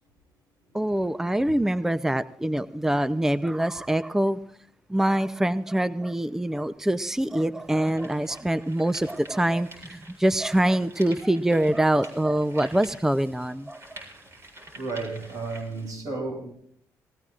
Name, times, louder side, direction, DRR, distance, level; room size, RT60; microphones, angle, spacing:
voice 1, 0.7-4.4 4.9-14.0, right 1 dB, 5° right, 0.6 m, -24 dB
sound 1, 6.7-6.8 7.4-15.9, right 2 dB, 40° right, 7.8 m, -48 dB
voice 2, 14.7-16.5, right 3 dB, 70° right, 5.7 m, -32 dB
19.5 x 19.5 x 2.5 m
cardioid pair, 80°, 7 cm